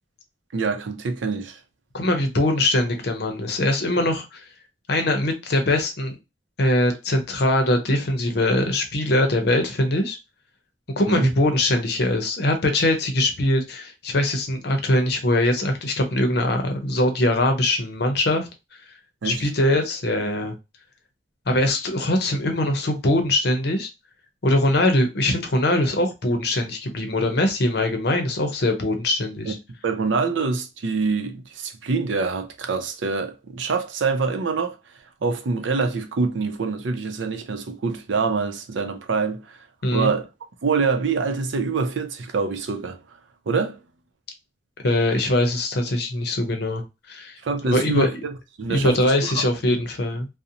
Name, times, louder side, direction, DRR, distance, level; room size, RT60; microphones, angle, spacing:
voice 1, 0.5-1.6 11.1-11.3 19.2-19.4 29.5-29.6 29.8-34.7 35.2-39.6 39.9-40.3 40.6-43.0 43.5-43.8 47.4-49.8, right 4 dB, 85° right, 0.5 m, -25 dB
voice 2, 1.9-4.4 4.9-6.2 6.6-10.2 11.0-18.5 19.2-20.5 21.5-23.9 24.4-29.5 39.8-40.1 44.8-46.8 47.1-47.4 47.7-48.1 48.7-50.3, left 1 dB, 60° left, 0.6 m, -22 dB
2.5 x 2.0 x 2.7 m
head